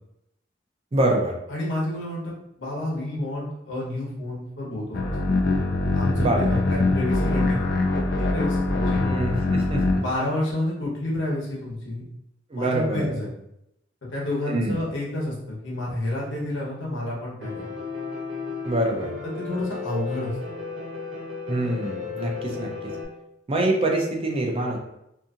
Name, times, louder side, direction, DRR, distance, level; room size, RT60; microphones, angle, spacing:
voice 1, 0.9-1.3 6.2-6.4 9.0-10.0 12.5-13.1 14.5-14.8 18.6-19.1 21.5-22.9 23.5-24.8, right 1 dB, 30° right, 1 dB, 0.5 m, -25 dB
voice 2, 1.5-2.3 2.6-5.2 5.9-9.1 10.0-12.0 12.5-13.3 14.1-15.3 15.6-17.6 19.2-20.4, left 1 dB, 85° left, -5 dB, 1.0 m, -29 dB
sound 1, 4.9-10.0, left 2 dB, 60° left, 0.4 m, -23 dB
Piano, 17.4-23.0, left 5 dB, 85° right, 0.7 m, -34 dB
2.7 x 2.6 x 2.4 m, 0.82 s
head